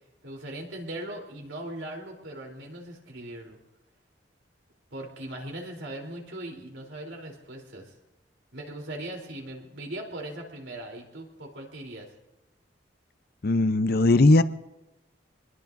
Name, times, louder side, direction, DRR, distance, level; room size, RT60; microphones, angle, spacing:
voice 1, 0.2-3.6 4.9-7.9 8.5-12.1, right 1 dB, 85° right, 0 dB, 3.5 m, -39 dB
voice 2, 13.4-14.4, left 2 dB, 55° left, 12 dB, 0.6 m, -19 dB
26.0 x 21.0 x 2.6 m, 0.98 s
head